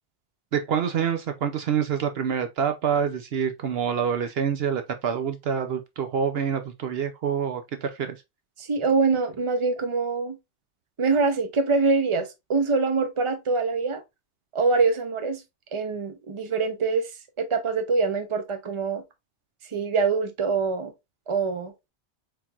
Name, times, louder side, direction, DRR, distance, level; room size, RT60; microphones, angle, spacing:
voice 1, 0.5-8.2, right 7 dB, 70° right, 0.8 m, -26 dB
voice 2, 8.6-10.4 11.0-14.0 14.5-15.4 15.7-17.1 17.4-19.0 19.7-20.9 21.3-21.7, right 4 dB, 30° right, 0.7 m, -24 dB
4.4 x 3.9 x 2.4 m
omnidirectional pair, 1.1 m